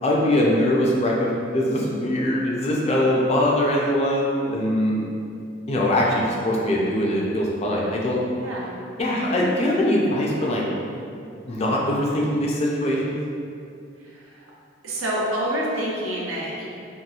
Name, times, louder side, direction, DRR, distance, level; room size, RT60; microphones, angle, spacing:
voice 1, 0.0-5.0 5.7-8.2 9.0-10.6 11.5-13.2, left 1 dB, 30° left, -3 dB, 0.3 m, -22 dB
voice 2, 14.8-16.7, right 1 dB, 85° right, -4 dB, 0.5 m, -27 dB
2.8 x 2.3 x 2.3 m, 2.4 s
head